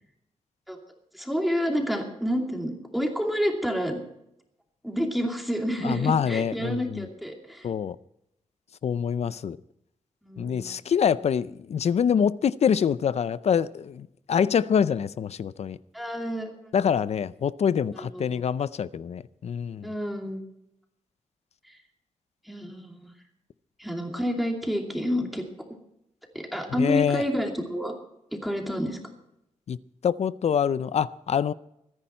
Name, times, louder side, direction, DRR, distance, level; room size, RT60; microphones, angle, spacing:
voice 1, 1.1-4.0 4.8-7.7 10.2-10.6 15.9-16.5 17.9-18.4 19.8-20.4 21.7-21.8 22.4-23.1 23.8-25.4 26.3-27.9 28.3-29.0, equal, ahead, 2.6 m, -29 dB
voice 2, 5.8-7.1 7.6-8.0 8.8-9.6 10.4-15.8 16.7-19.9 26.7-27.2 29.7-29.8 30.0-31.5, left 7 dB, 60° left, 0.5 m, -25 dB
24.0 x 10.0 x 4.4 m
wide cardioid pair, 155°, 12 cm